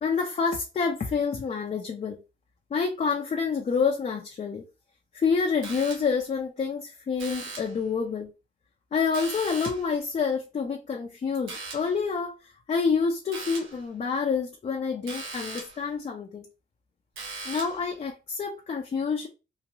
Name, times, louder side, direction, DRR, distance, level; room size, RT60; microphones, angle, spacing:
voice 1, 0.0-2.2 2.7-4.6 5.1-8.3 8.9-12.3 12.7-16.4 17.4-19.3, left 5 dB, 35° left, 0.5 m, -28 dB
sound 1, 5.6-6.3 7.2-7.8 9.1-10.0 11.5-12.0 13.3-13.8 15.1-15.9 17.2-17.9, right 3 dB, 80° right, 0.9 m, -39 dB
3.0 x 2.5 x 2.6 m
cardioid pair, 90°, 20 cm